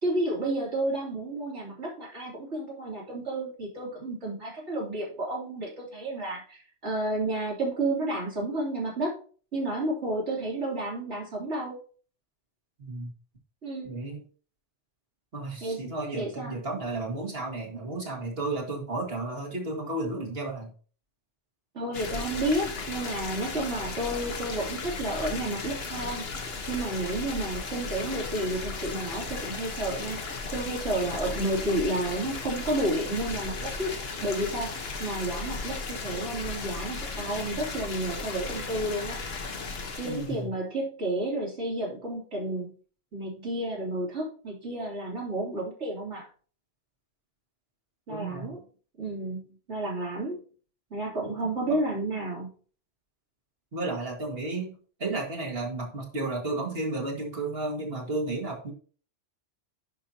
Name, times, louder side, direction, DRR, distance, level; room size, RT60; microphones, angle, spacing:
voice 1, 0.0-9.2 9.5-11.8 13.6-13.9 15.6-16.6 21.7-26.2 26.7-30.2 30.5-33.9 34.2-34.7 35.0-39.2 40.0-42.7 43.1-46.3 48.1-48.6 49.0-50.4 50.9-52.5, right 1 dB, 70° right, -4 dB, 3.6 m, -31 dB
voice 2, 12.8-13.1 13.8-14.2 15.3-20.7 40.0-40.5 48.1-48.5 51.4-51.5 53.7-54.7 55.0-58.7, right 2 dB, 55° right, -1 dB, 2.2 m, -33 dB
sound 1, 21.9-40.4, left 4 dB, 60° left, 1.4 m, -36 dB
10.5 x 5.6 x 2.9 m, 0.41 s
omnidirectional pair, 1.2 m